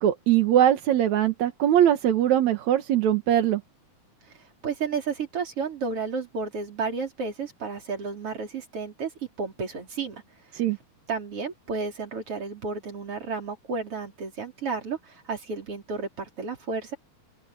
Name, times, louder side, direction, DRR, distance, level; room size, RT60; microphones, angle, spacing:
voice 1, 0.0-3.6 10.5-10.8, right 11 dB, 60° right, 2.1 m, -21 dB
voice 2, 4.6-9.1 9.4-10.2 11.1-17.0, right 4 dB, 35° right, 5.0 m, -32 dB
open air
omnidirectional pair, 4.5 m